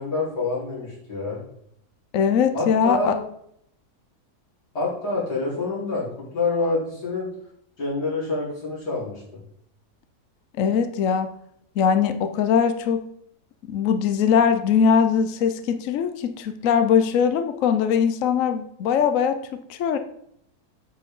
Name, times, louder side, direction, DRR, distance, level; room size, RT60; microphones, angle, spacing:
voice 1, 0.0-1.4 2.5-3.2 4.7-7.3 7.8-9.4, left 3 dB, 90° left, -6 dB, 4.4 m, -27 dB
voice 2, 2.1-3.2 10.6-11.3 11.8-13.0 13.7-20.0, left 7 dB, 65° left, 9 dB, 1.0 m, -21 dB
8.6 x 7.5 x 3.7 m, 0.70 s
omnidirectional pair, 1.7 m